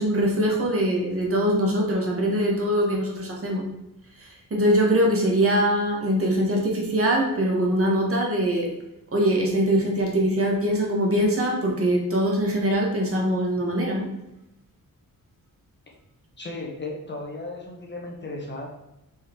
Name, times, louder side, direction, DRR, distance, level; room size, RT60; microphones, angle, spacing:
voice 1, 0.0-3.6 4.2-8.7 9.1-14.1, equal, 40° right, -1 dB, 1.7 m, -23 dB
voice 2, 16.4-18.7, left 2 dB, 30° left, 0 dB, 1.4 m, -35 dB
5.5 x 4.9 x 4.7 m, 0.90 s
wide cardioid pair, 155°, 34 cm